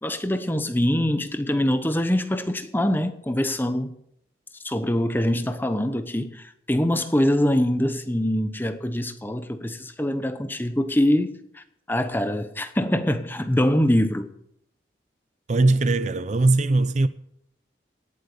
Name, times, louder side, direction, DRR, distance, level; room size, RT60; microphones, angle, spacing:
voice 1, 0.0-3.9 4.6-14.3, left 1 dB, 10° left, 0.9 m, -24 dB
voice 2, 15.5-17.1, right 2 dB, 40° right, 0.5 m, -20 dB
17.5 x 8.1 x 6.7 m
head